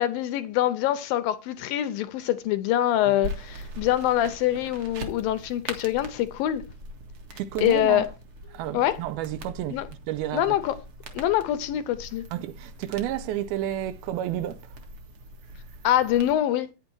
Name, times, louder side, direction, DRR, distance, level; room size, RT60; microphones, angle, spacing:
voice 1, 0.0-6.6 7.6-8.1 8.7-9.0 9.7-9.9 10.3-10.7 11.2-12.2 15.8-16.7, left 12 dB, 75° left, 2.3 m, -24 dB
sound 1, 3.2-16.3, right 1 dB, 45° right, 2.0 m, -42 dB
voice 2, 7.4-8.1 8.5-10.6 12.3-14.8, right 12 dB, 80° right, 2.5 m, -31 dB
9.9 x 8.7 x 4.6 m
omnidirectional pair, 4.5 m